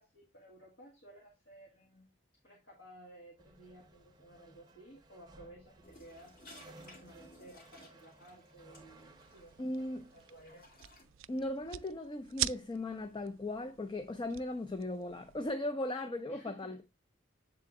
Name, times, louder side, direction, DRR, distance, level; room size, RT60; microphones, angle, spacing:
voice 1, 0.0-2.1 2.4-10.6 16.3-16.8, right 1 dB, 85° left, 1.6 m, -56 dB
sound 1, 3.4-12.0, right 2 dB, 20° right, 0.6 m, -60 dB
sound 2, 5.8-11.0, left 1 dB, 45° left, 2.1 m, -59 dB
sound 3, 8.8-15.5, right 14 dB, 85° right, 0.3 m, -44 dB
voice 2, 9.6-10.1 11.3-16.8, left 1 dB, 25° left, 0.4 m, -37 dB
7.5 x 3.8 x 3.6 m
head